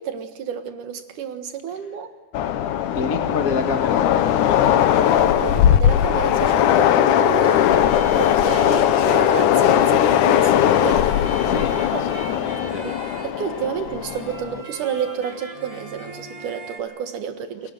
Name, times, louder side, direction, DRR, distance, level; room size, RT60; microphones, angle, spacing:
voice 1, 0.0-2.1 5.4-7.6 8.1-11.1 11.9-12.1 12.8-12.9 13.2-17.7, right 8 dB, 75° right, 7 dB, 3.2 m, -30 dB
Train, 2.3-14.6, left 10 dB, 80° left, 2.5 m, -19 dB
voice 2, 2.9-5.0 11.4-12.8, left 4 dB, 35° left, 4 dB, 1.4 m, -29 dB
sound 1, 6.3-16.8, right 1 dB, 10° left, 4.0 m, -38 dB
30.0 x 22.5 x 7.9 m, 1.2 s
omnidirectional pair, 3.6 m